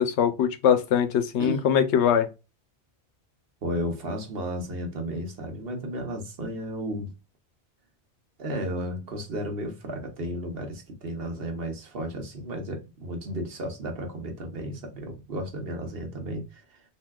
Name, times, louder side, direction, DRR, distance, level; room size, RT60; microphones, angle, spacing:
voice 1, 0.0-2.3, left 8 dB, 85° left, 0.9 m, -22 dB
voice 2, 3.6-7.1 8.4-16.8, equal, 60° right, 1.1 m, -33 dB
3.5 x 2.7 x 2.2 m
omnidirectional pair, 1.1 m